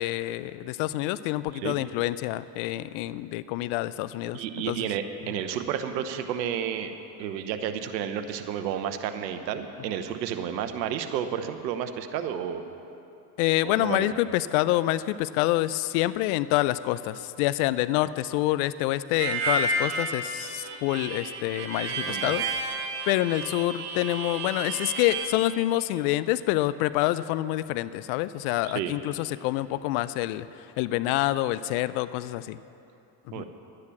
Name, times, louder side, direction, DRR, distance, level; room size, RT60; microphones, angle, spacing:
voice 1, 0.0-4.4 4.7-4.9 13.4-22.4 23.0-30.5 30.8-32.6 33.3-33.4, left 16 dB, 65° left, 16 dB, 0.6 m, -27 dB
voice 2, 4.3-6.9 7.2-12.6 13.6-14.1 22.0-22.3 28.6-28.9 33.3-33.4, right 9 dB, 80° right, 8 dB, 1.1 m, -31 dB
Harmonica, 19.2-25.3, right 3 dB, 50° right, 2.3 m, -31 dB
11.5 x 9.9 x 7.2 m, 2.7 s
hypercardioid pair, 90°, 50 cm